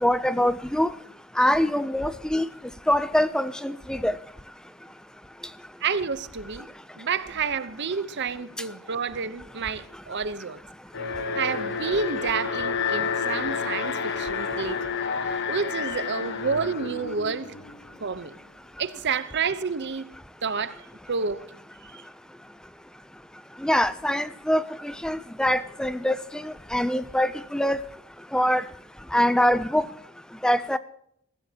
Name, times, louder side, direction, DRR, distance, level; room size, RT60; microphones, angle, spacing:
voice 1, 0.0-0.9 1.4-2.5 2.9-4.1 23.6-27.8 28.3-28.6 29.1-29.9 30.4-30.8, equal, 5° left, 0.4 m, -24 dB
voice 2, 5.8-6.7 7.0-10.6 11.3-14.8 15.3-17.5 18.0-18.3 18.8-20.0 20.4-20.8 21.1-21.4 21.9-22.0, right 5 dB, 55° right, 0.8 m, -29 dB
Alarm, 10.9-18.0, left 5 dB, 55° left, 1.2 m, -30 dB
21.0 x 14.5 x 2.9 m
head